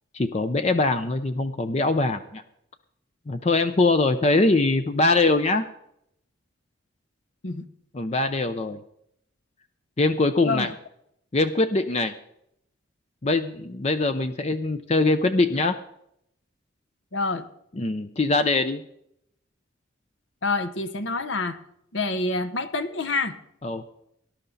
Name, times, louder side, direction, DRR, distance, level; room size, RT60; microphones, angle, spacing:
voice 1, 0.1-2.4 3.3-5.6 7.9-8.8 10.0-10.7 11.3-12.1 13.2-15.8 17.8-18.8 23.6-23.9, left 2 dB, 35° left, 0.6 m, -22 dB
voice 2, 17.1-17.5 20.4-21.6 21.9-23.4, left 3 dB, 65° left, 1.1 m, -27 dB
19.0 x 11.5 x 4.0 m
head